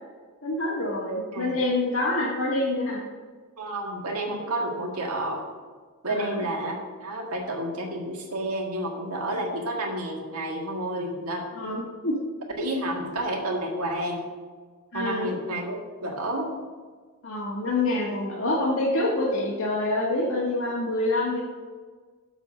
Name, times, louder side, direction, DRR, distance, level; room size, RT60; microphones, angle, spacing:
voice 1, 0.4-3.0 6.1-6.5 11.6-12.2 12.6-12.7 14.9-15.3 17.2-21.4, left 2 dB, 65° left, -4 dB, 1.5 m, -26 dB
voice 2, 3.6-5.4 6.0-11.5 12.6-14.3 14.9-16.5, right 1 dB, 80° right, 0 dB, 1.8 m, -30 dB
6.9 x 6.5 x 6.5 m, 1.5 s
head